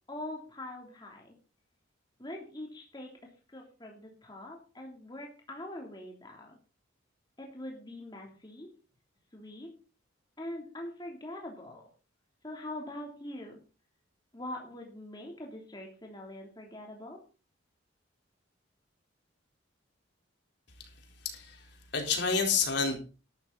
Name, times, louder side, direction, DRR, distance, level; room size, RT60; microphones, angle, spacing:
voice 1, 0.1-1.3 2.2-3.1 3.5-6.5 7.4-8.7 9.3-9.7 10.4-11.9 12.4-13.6 14.3-17.2, left 1 dB, 20° left, 0 dB, 3.3 m, -43 dB
voice 2, 21.2-21.6 21.9-23.0, left 5 dB, 60° left, 2 dB, 4.2 m, -28 dB
12.5 x 12.5 x 4.2 m, 0.35 s
head